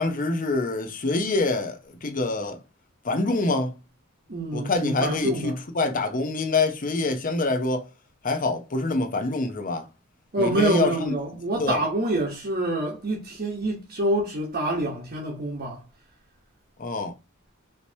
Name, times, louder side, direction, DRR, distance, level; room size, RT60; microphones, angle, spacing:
voice 1, 0.0-2.6 3.0-3.7 4.5-7.9 8.2-9.9 10.4-11.1 11.6-11.8 16.8-17.1, left 3 dB, 40° left, 0.8 m, -25 dB
voice 2, 4.3-5.6 10.3-15.8, right 1 dB, 45° right, 1.0 m, -26 dB
5.0 x 3.0 x 2.7 m
head